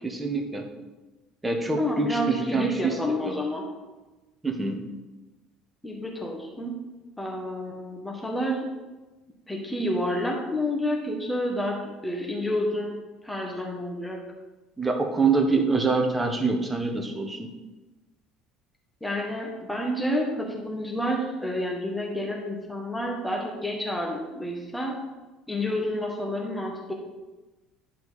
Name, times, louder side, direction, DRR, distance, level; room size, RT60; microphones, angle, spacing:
voice 1, 0.0-0.7 1.4-3.4 4.4-4.8 14.8-17.5, right 3 dB, 15° right, 4 dB, 1.3 m, -25 dB
voice 2, 1.8-3.7 5.8-6.8 7.2-8.7 9.5-13.0 13.2-14.2 19.0-25.0 25.5-26.9, equal, 10° left, 0 dB, 1.6 m, -29 dB
10.0 x 4.7 x 4.2 m, 1.2 s
hypercardioid pair, 65°, 0 cm